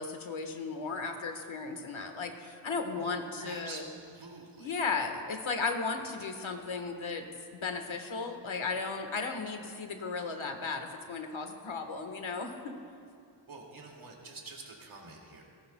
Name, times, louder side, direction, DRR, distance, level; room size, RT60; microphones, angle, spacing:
voice 1, 0.0-3.8 4.6-7.2 7.5-12.7, left 4 dB, 75° left, 5 dB, 1.4 m, -35 dB
voice 2, 3.4-4.8 13.5-15.4, right 3 dB, 85° right, -1 dB, 2.3 m, -47 dB
29.0 x 13.0 x 2.2 m, 2.3 s
cardioid pair, 55°, 48 cm